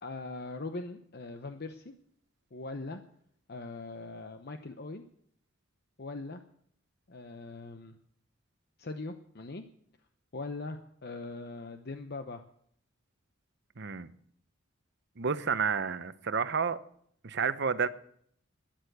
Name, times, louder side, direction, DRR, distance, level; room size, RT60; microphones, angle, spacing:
voice 1, 0.0-1.9 2.5-3.0 3.5-5.0 6.0-6.4 7.1-8.0 8.8-9.6 10.3-12.4, left 3 dB, 50° left, 0.8 m, -41 dB
voice 2, 13.8-14.1 15.2-16.8 17.2-17.9, right 6 dB, 55° right, 0.8 m, -30 dB
13.0 x 10.5 x 7.9 m
head